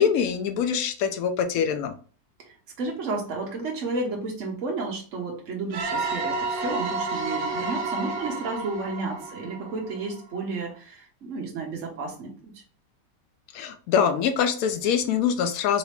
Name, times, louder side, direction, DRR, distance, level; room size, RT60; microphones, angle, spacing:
voice 1, 0.0-1.9 13.5-15.8, left 7 dB, 65° left, 7 dB, 1.0 m, -24 dB
voice 2, 2.4-12.5, right 3 dB, 50° right, 0 dB, 1.3 m, -32 dB
sound 1, 5.7-10.3, right 3 dB, 75° right, 1.4 m, -30 dB
4.0 x 2.9 x 3.3 m, 0.39 s
omnidirectional pair, 1.8 m